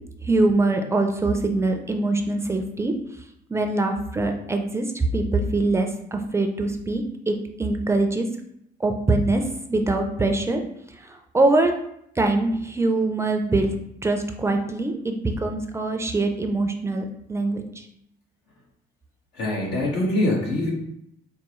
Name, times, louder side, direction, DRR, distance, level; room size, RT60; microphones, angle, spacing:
voice 1, 0.2-2.9 3.5-8.3 8.8-10.6 10.9-11.7 12.2-13.7 14.0-17.8, right 2 dB, 15° right, 4 dB, 0.4 m, -23 dB
voice 2, 19.3-20.7, left 1 dB, 85° left, -3 dB, 1.4 m, -23 dB
4.6 x 2.3 x 3.0 m, 0.75 s
cardioid pair, 110°, 17 cm